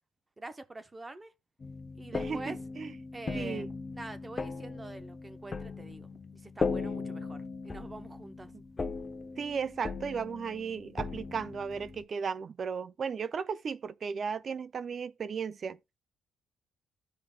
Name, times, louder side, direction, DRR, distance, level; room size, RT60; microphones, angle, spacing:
voice 1, 0.4-1.3 2.0-2.6 3.1-8.5, right 2 dB, 20° right, 0.9 m, -45 dB
sound 1, 1.6-12.0, left 4 dB, 35° left, 0.8 m, -38 dB
voice 2, 2.1-2.9 3.3-3.7 9.4-15.8, right 6 dB, 50° right, 0.4 m, -35 dB
14.5 x 5.0 x 2.2 m
cardioid pair, 90°, 0 cm